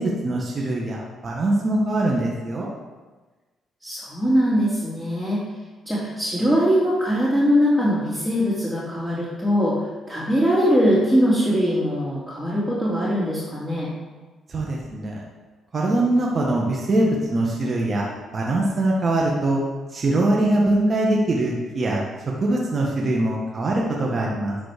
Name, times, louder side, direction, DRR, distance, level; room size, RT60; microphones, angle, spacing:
voice 1, 0.0-2.7 14.5-15.2 15.7-18.1 18.3-19.6 19.9-22.0 22.4-24.6, right 2 dB, 40° right, -2 dB, 1.3 m, -22 dB
voice 2, 3.8-5.4 5.9-9.8 10.1-13.9, equal, 10° right, -11 dB, 2.8 m, -21 dB
11.5 x 4.0 x 5.0 m, 1.3 s
cardioid pair, 90°, 0 cm